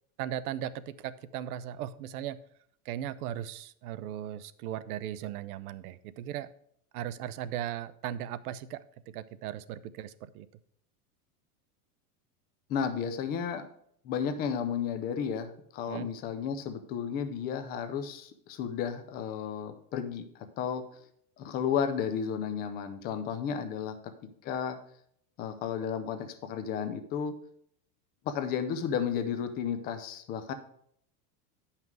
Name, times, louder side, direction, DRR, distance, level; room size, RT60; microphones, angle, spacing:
voice 1, 0.2-2.4 2.8-6.5 6.9-8.8 9.1-10.5 15.9-16.1, right 11 dB, 75° right, 16 dB, 0.7 m, -37 dB
voice 2, 12.7-13.7 14.0-20.8 21.4-24.0 24.4-24.8 25.4-27.3 28.3-30.5, left 7 dB, 20° left, 8 dB, 0.4 m, -33 dB
9.3 x 5.8 x 4.6 m, 0.67 s
supercardioid pair, 160°, 45 cm